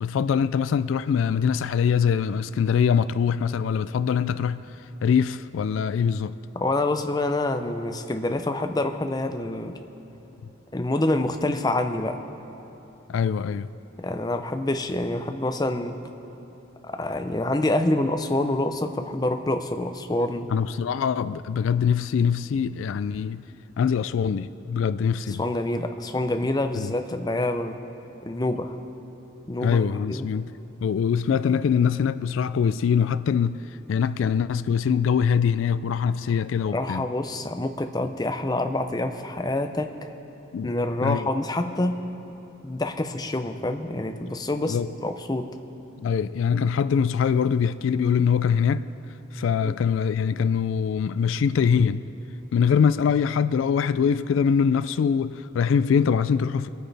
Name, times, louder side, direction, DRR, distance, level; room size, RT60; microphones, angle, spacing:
voice 1, 0.0-4.6 5.0-6.3 13.1-13.7 20.5-23.4 23.8-25.5 26.8-26.9 29.6-30.5 30.8-33.6 33.9-37.1 40.5-40.7 41.0-41.3 44.6-44.9 46.0-48.9 49.3-52.0 52.5-56.7, left 7 dB, 80° left, 0.3 m, -23 dB
voice 2, 6.6-9.8 10.7-12.2 14.0-16.0 16.8-20.5 25.3-27.8 28.2-28.8 29.5-30.3 36.7-39.9 40.6-42.0 42.6-44.8 45.0-45.5 49.6-49.7, left 2 dB, 20° left, 0.5 m, -27 dB
24.0 x 9.3 x 3.4 m
head